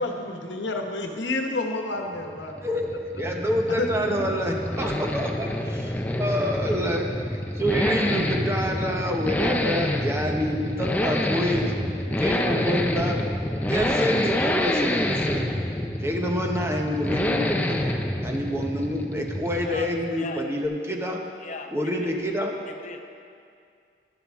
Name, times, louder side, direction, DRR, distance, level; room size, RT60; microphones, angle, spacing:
voice 1, 0.0-2.6 3.8-4.3, left 2 dB, 90° left, 3 dB, 1.1 m, -29 dB
sound 1, 2.2-20.2, left 1 dB, 10° left, 0.5 m, -27 dB
voice 2, 3.2-11.7 12.0-13.2 13.7-15.5 16.0-17.9 18.2-21.2 21.7-22.5, equal, 15° right, 1 dB, 0.9 m, -27 dB
voice 3, 21.4-22.1 22.7-23.0, left 3 dB, 45° left, 5 dB, 0.7 m, -37 dB
11.5 x 11.0 x 3.6 m, 2.4 s
head